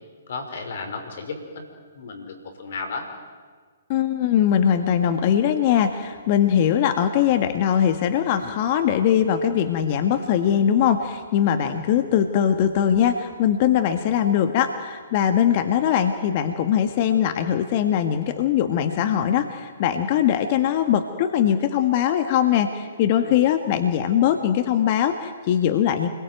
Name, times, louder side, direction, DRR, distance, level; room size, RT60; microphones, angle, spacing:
voice 1, 0.3-1.6 2.0-3.1 23.2-23.4, left 4 dB, 60° left, 6 dB, 5.7 m, -33 dB
voice 2, 3.9-26.1, left 9 dB, 40° left, 8 dB, 1.8 m, -21 dB
29.0 x 22.0 x 9.4 m, 1.5 s
hypercardioid pair, 130°, 0 cm